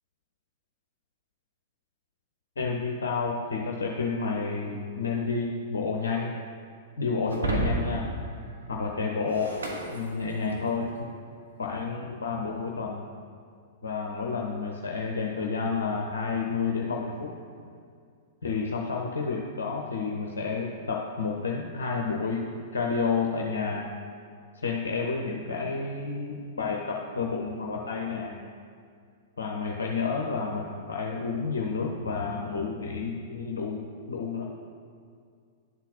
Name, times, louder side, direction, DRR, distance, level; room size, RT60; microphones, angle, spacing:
voice 1, 2.6-6.3 7.0-8.1 8.7-9.5 9.9-10.9 11.6-13.0 13.8-17.4 18.4-22.4 22.7-23.9 24.6-28.4 29.4-33.8 34.1-34.5, left 4 dB, 65° left, -1 dB, 0.6 m, -30 dB
Shatter, 7.3-10.8, right 2 dB, 75° right, 0.9 m, -32 dB
11.0 x 4.0 x 4.1 m, 2.2 s
figure-of-eight pair, 105°, 0 cm